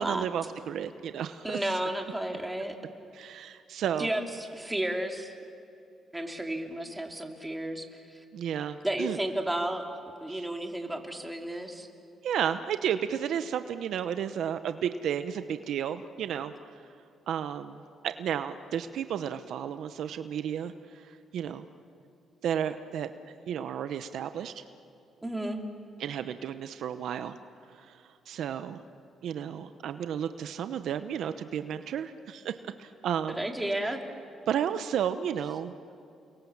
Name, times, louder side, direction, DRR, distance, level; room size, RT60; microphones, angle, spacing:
voice 1, 0.0-1.6 3.1-4.1 8.3-9.2 10.3-10.4 12.2-16.5 17.3-21.7 22.4-23.1 23.5-24.6 26.0-27.4 27.7-28.0 28.3-28.8 29.2-33.4 34.5-35.7, right 9 dB, 75° right, 10 dB, 0.9 m, -32 dB
voice 2, 1.4-2.8 4.0-5.3 6.1-8.2 8.8-9.8 10.2-11.9 25.2-25.6 33.3-34.0, right 1 dB, 10° right, 2 dB, 3.0 m, -32 dB
30.0 x 23.0 x 7.3 m, 2.6 s
cardioid pair, 90°, 0 cm